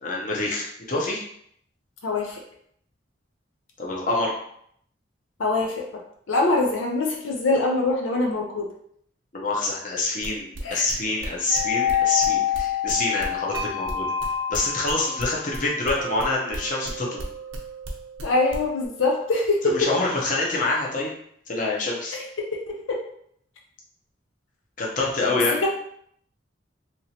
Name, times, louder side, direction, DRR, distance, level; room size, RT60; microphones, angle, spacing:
voice 1, 0.0-1.2 3.8-4.3 9.3-14.0 14.5-17.2 19.6-21.1 21.5-22.2 24.8-25.6, left 2 dB, 40° left, -3 dB, 0.7 m, -26 dB
voice 2, 2.0-2.4 5.4-8.7 10.6-10.8 18.2-19.9 22.1-22.2 22.9-23.0 25.6-25.7, left 2 dB, 85° left, 0 dB, 0.5 m, -24 dB
sound 1, 10.2-13.6 13.9-17.6 17.8-18.2 18.5-18.9, right 2 dB, 85° right, 0.7 m, -39 dB
sound 2, 11.5-19.5, left 8 dB, 20° right, 0.6 m, -29 dB
2.9 x 2.9 x 2.8 m, 0.68 s
head